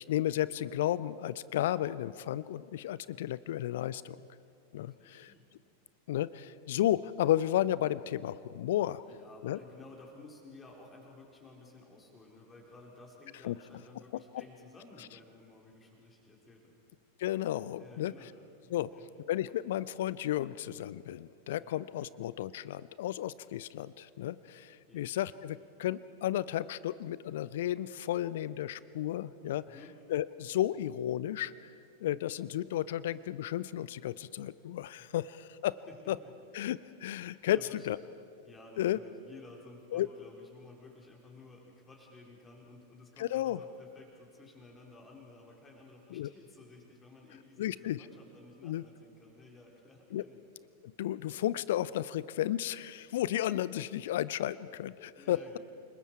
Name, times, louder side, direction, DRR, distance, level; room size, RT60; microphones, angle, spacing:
voice 1, 0.0-4.2 4.7-5.3 6.1-9.0 9.4-9.6 13.4-13.6 17.2-18.1 18.7-18.9 19.3-29.7 30.1-31.5 32.0-35.8 36.1-36.2 36.5-37.6 37.9-38.0 38.8-39.0 39.9-40.1 43.2-43.6 46.1-46.3 47.6-48.0 48.6-48.8 50.1-50.2 50.8-55.6, left 13 dB, 55° left, 18 dB, 0.5 m, -33 dB
voice 2, 4.8-5.4 9.0-16.8 17.8-18.3 18.6-19.0 21.6-22.1 24.9-25.1 29.7-30.0 35.0-35.2 35.9-36.0 36.2-36.3 37.3-38.0 38.4-50.4 55.2-55.6, left 3 dB, 15° left, -1 dB, 4.1 m, -54 dB
29.0 x 20.0 x 4.7 m, 2.4 s
figure-of-eight pair, 90°, 0 cm